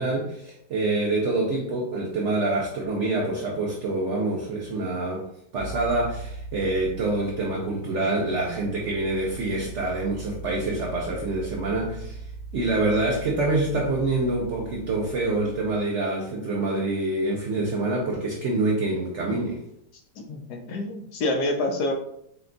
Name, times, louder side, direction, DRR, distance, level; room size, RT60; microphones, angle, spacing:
voice 1, 0.0-12.2 12.5-19.6, right 2 dB, 70° right, -1 dB, 0.7 m, -26 dB
sound 1, 5.6-15.8, right 3 dB, 40° left, 0.4 m, -39 dB
voice 2, 20.2-21.9, left 2 dB, 75° left, 2 dB, 1.3 m, -27 dB
4.1 x 2.3 x 3.8 m, 0.73 s
omnidirectional pair, 1.8 m